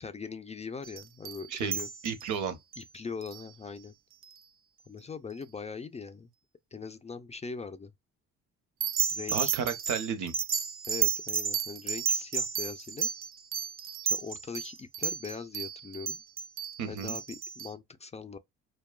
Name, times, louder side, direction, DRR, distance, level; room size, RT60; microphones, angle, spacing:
voice 1, 0.0-1.9 2.8-4.0 4.9-6.3 6.7-7.9 9.1-9.5 10.9-13.1 14.0-16.2 16.9-18.4, left 5 dB, 20° left, 0.4 m, -41 dB
sound 1, 0.8-2.4 2.7-2.8 3.2-3.4 4.2-4.4 8.8-17.7, right 7 dB, 45° right, 0.4 m, -33 dB
voice 2, 2.0-2.6 9.3-10.3 16.8-17.2, right 7 dB, 80° right, 0.8 m, -32 dB
2.8 x 2.3 x 2.2 m
cardioid pair, 90°, 30 cm